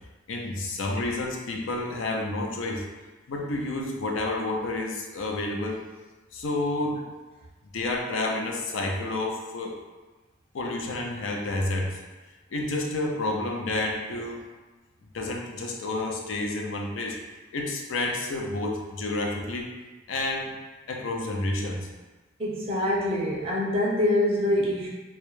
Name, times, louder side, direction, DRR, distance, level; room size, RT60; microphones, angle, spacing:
voice 1, 0.3-2.8 3.3-5.8 6.3-7.0 7.7-9.8 10.5-12.0 12.5-14.4 15.1-17.2 17.5-19.7 20.1-20.5 20.9-21.9, left 2 dB, 85° left, 1 dB, 0.4 m, -30 dB
voice 2, 22.4-24.9, left 1 dB, 30° right, -4 dB, 0.4 m, -25 dB
2.3 x 2.0 x 3.0 m, 1.2 s
head